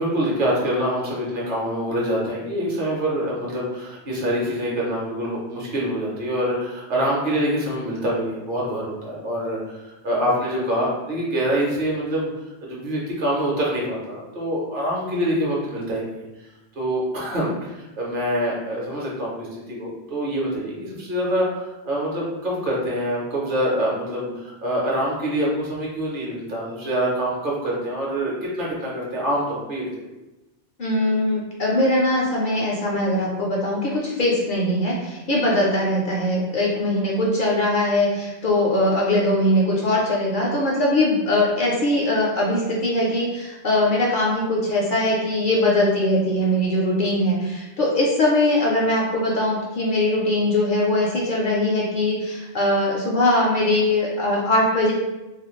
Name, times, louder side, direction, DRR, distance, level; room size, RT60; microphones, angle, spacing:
voice 1, 0.0-12.3 12.6-16.3 16.8-30.0, equal, 55° right, -4 dB, 0.8 m, -25 dB
voice 2, 30.8-54.9, left 1 dB, 60° left, -3 dB, 0.6 m, -21 dB
2.4 x 2.2 x 3.0 m, 1.0 s
omnidirectional pair, 1.1 m